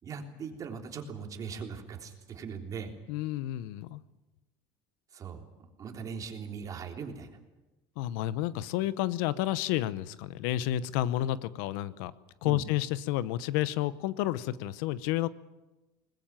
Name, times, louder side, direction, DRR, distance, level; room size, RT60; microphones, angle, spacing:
voice 1, 0.0-2.9 5.1-5.5 5.8-7.4 12.4-12.6, right 6 dB, 30° right, 4 dB, 3.5 m, -40 dB
voice 2, 3.1-4.0 8.0-12.1 12.4-15.3, left 14 dB, 80° left, 17 dB, 0.9 m, -30 dB
21.5 x 20.5 x 9.1 m, 1.1 s
cardioid pair, 135°, 11 cm